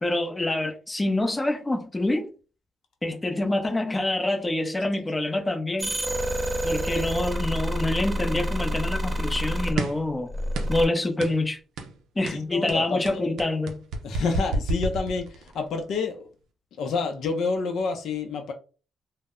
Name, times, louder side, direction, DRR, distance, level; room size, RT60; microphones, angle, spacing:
voice 1, 0.0-2.3 3.0-5.9 6.6-10.3 10.7-11.6 12.2-13.8, left 2 dB, 20° left, 0.6 m, -26 dB
sound 1, 5.8-9.8 10.3-10.9, equal, 25° right, 0.6 m, -28 dB
sound 2, 9.8-10.1 10.5-10.9 11.2-11.4 11.8-12.0 12.3-15.6, right 2 dB, 85° right, 0.4 m, -30 dB
voice 2, 12.3-13.3 14.0-16.3 16.8-18.5, left 4 dB, 75° left, 0.5 m, -28 dB
2.0 x 2.0 x 3.6 m
cardioid pair, 80°, 0 cm